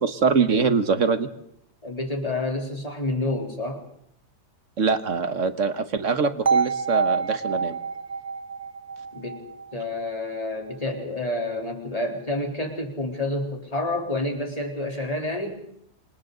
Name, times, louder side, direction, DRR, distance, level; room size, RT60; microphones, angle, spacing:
voice 1, 0.0-1.3 4.8-7.8, right 5 dB, 50° right, 10 dB, 1.5 m, -23 dB
voice 2, 1.8-3.8 9.1-9.5 9.7-15.6, left 2 dB, 20° left, 1 dB, 3.5 m, -29 dB
sound 1, 6.5-10.4, right 5 dB, 35° right, 0.8 m, -27 dB
28.0 x 26.0 x 3.9 m, 0.71 s
omnidirectional pair, 1.8 m